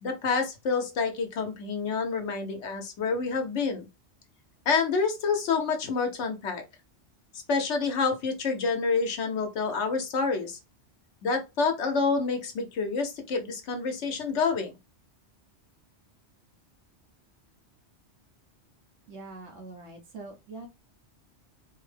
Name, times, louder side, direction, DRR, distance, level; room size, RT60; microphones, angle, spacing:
voice 1, 0.0-3.9 4.7-6.6 7.5-10.6 11.2-14.7, left 4 dB, 85° left, 1.1 m, -28 dB
voice 2, 19.1-20.7, right 3 dB, 85° right, 1.3 m, -43 dB
4.1 x 2.1 x 3.2 m
omnidirectional pair, 1.1 m